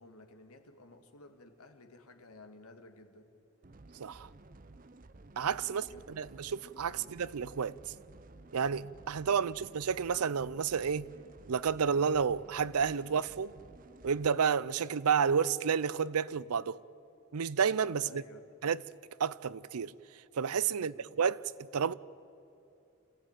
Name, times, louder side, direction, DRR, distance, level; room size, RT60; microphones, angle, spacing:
voice 1, 0.0-3.3 5.7-6.1 6.9-7.2 18.0-18.5 20.7-21.1, left 2 dB, 85° left, 2.0 m, -55 dB
sound 1, 3.6-14.3, right 2 dB, 40° right, 0.6 m, -54 dB
voice 2, 5.4-7.9 8.5-11.1 11.5-13.5 14.0-16.8 17.3-18.2 18.6-18.8 19.2-19.9 20.4-21.4 21.7-21.9, right 6 dB, 85° right, 0.5 m, -30 dB
26.5 x 15.5 x 8.9 m
head